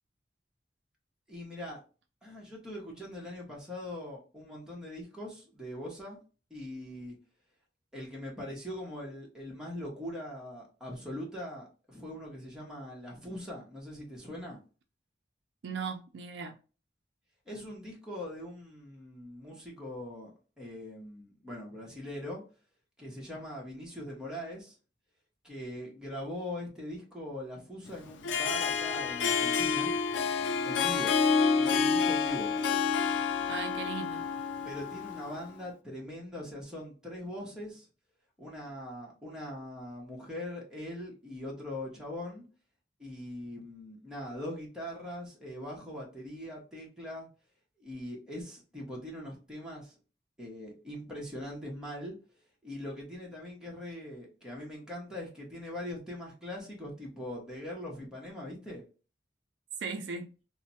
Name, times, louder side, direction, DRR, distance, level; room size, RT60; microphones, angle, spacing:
voice 1, 1.3-1.8 2.2-6.2 6.5-7.2 7.9-14.6 17.5-20.3 20.6-22.4 23.0-24.8 25.4-29.9 30.6-31.2 31.5-32.5 34.6-37.9 38.4-42.4 43.0-47.3 47.8-49.9 50.4-52.2 52.6-58.8, left 1 dB, 5° right, 0.9 m, -41 dB
voice 2, 15.6-16.6 33.5-34.3 59.8-60.3, right 5 dB, 65° right, 0.4 m, -38 dB
Harp, 28.1-35.4, left 5 dB, 85° left, 0.4 m, -29 dB
3.2 x 2.0 x 2.7 m
head